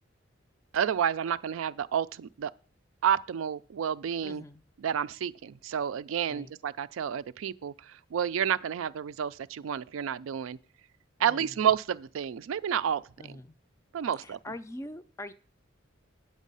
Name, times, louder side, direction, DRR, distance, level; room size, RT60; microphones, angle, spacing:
voice 1, 0.7-2.5 3.0-4.4 4.8-10.6 11.2-13.0 13.9-14.4, right 8 dB, 80° right, 0.4 m, -30 dB
voice 2, 4.2-4.6 6.3-6.5 11.2-11.6 13.2-13.6 14.2-15.3, left 1 dB, 15° left, 0.3 m, -43 dB
9.0 x 7.3 x 5.4 m
head